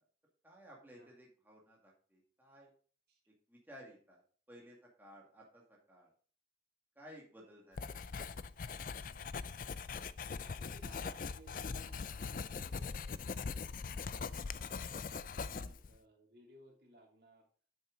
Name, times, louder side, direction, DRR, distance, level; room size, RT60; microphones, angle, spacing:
voice 1, 0.4-2.7 3.5-4.2 4.5-6.1 7.0-8.0 15.5-15.7, equal, 10° right, -3 dB, 2.1 m, -57 dB
Writing, 7.8-16.0, left 5 dB, 45° left, 0.4 m, -41 dB
voice 2, 9.0-9.7 10.4-14.9 15.3-17.5, right 1 dB, 60° right, 0 dB, 2.9 m, -62 dB
9.2 x 8.4 x 3.9 m, 0.43 s
head